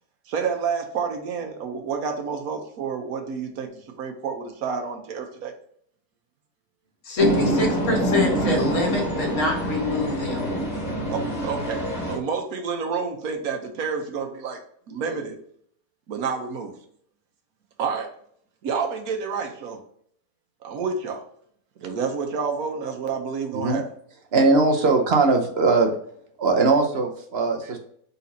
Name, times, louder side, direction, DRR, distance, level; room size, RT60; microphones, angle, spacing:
voice 1, 0.3-5.5 11.1-14.6 14.9-15.4 16.1-16.7 17.8-18.1 18.6-19.8 20.6-21.2 21.8-23.8 27.6-27.7, right 5 dB, 75° right, 4 dB, 1.3 m, -29 dB
voice 2, 7.0-10.5, left 3 dB, 55° left, 0 dB, 1.6 m, -25 dB
sound 1, 7.2-12.2, right 1 dB, 25° left, 1.9 m, -25 dB
voice 3, 24.3-25.9 26.4-27.8, right 3 dB, 50° right, 3 dB, 0.9 m, -20 dB
4.2 x 4.1 x 2.7 m, 0.64 s
omnidirectional pair, 1.6 m